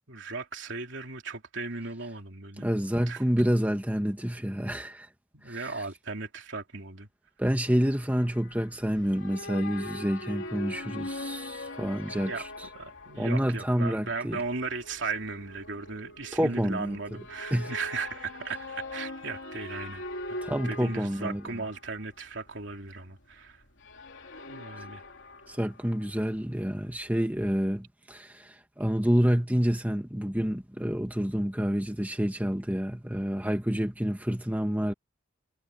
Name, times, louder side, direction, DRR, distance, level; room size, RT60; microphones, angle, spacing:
voice 1, 0.1-2.7 3.1-3.2 5.3-7.1 12.2-12.5 12.7-23.6 24.5-25.0, right 4 dB, 60° right, 3.3 m, -37 dB
voice 2, 2.6-5.1 5.4-5.6 7.4-12.3 13.2-14.4 16.3-17.0 17.5-17.7 20.4-21.4 25.5-34.9, equal, 10° right, 1.6 m, -28 dB
sound 1, 7.7-26.6 26.9-27.3, left 2 dB, 60° left, 3.4 m, -42 dB
head